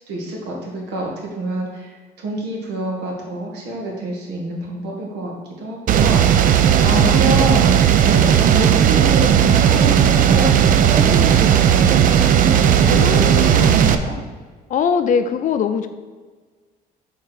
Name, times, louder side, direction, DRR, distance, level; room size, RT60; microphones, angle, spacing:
voice 1, 0.1-14.1, right 1 dB, 85° right, -1 dB, 1.6 m, -27 dB
sound 1, 5.9-14.0, right 9 dB, 55° right, 0.4 m, -14 dB
voice 2, 6.8-7.7 12.8-13.9 14.7-15.9, left 7 dB, 50° left, 9 dB, 0.5 m, -23 dB
6.6 x 3.6 x 4.5 m, 1.4 s
cardioid pair, 110°, 17 cm